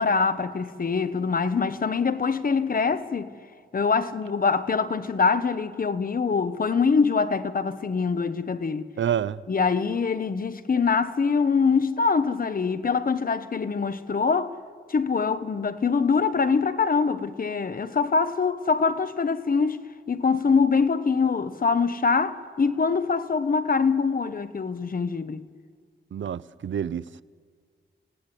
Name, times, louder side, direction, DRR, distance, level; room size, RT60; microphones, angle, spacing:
voice 1, 0.0-3.3 3.7-8.9 9.5-14.5 14.9-19.8 20.1-25.5, left 5 dB, 50° left, 1.1 m, -24 dB
voice 2, 9.0-9.4 26.1-27.2, right 9 dB, 80° right, 0.6 m, -28 dB
28.0 x 17.0 x 10.0 m
wide cardioid pair, 110°, 19 cm